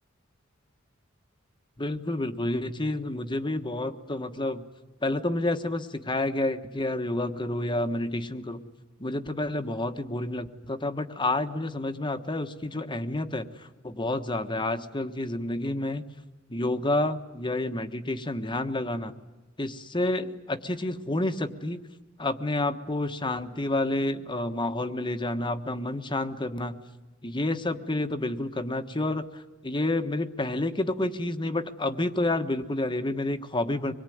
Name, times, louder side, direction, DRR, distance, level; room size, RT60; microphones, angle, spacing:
voice 1, 1.8-4.6 5.0-8.7 9.0-16.0 16.5-19.1 19.6-21.9 22.2-26.8 27.2-33.9, left 2 dB, 25° left, 7 dB, 1.3 m, -29 dB
25.5 x 22.0 x 9.4 m, 1.1 s
head